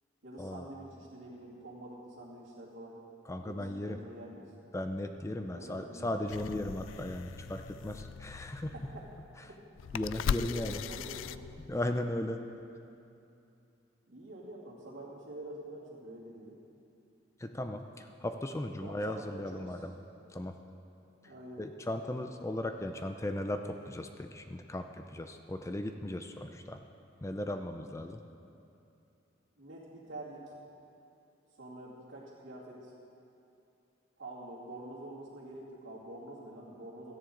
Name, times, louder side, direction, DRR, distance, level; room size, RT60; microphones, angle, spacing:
voice 1, 0.2-3.0 3.4-4.5 5.5-6.5 8.7-9.1 9.5-9.6 10.1-11.5 14.1-16.6 18.8-19.8 21.2-21.6 29.6-30.6 31.6-32.9 34.2-37.2, right 1 dB, 80° right, -11 dB, 2.6 m, -47 dB
voice 2, 3.3-4.0 4.7-8.7 9.9-10.8 11.7-12.4 17.4-19.9 20.3-20.6 21.6-26.8 27.2-28.2, left 1 dB, 15° left, 6 dB, 0.5 m, -37 dB
sound 1, 6.3-12.0, left 7 dB, 85° left, 0.3 m, -39 dB
17.0 x 14.0 x 3.9 m, 2.7 s
head